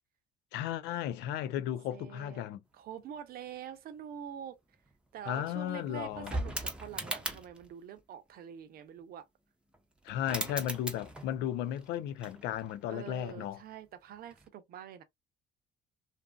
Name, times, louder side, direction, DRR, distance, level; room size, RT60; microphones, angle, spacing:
voice 1, 0.5-2.6 5.3-6.3 10.0-13.6, left 11 dB, 85° left, 0.4 m, -35 dB
voice 2, 1.9-2.5 2.7-4.6 5.1-9.3 12.9-15.0, right 9 dB, 60° right, 0.6 m, -45 dB
sound 1, 4.9-5.0 5.2-7.7 9.7-9.8 10.1-11.5 11.7-12.9 14.3-14.5, right 1 dB, 5° right, 0.6 m, -39 dB
2.6 x 2.6 x 2.2 m
cardioid pair, 110°, 17 cm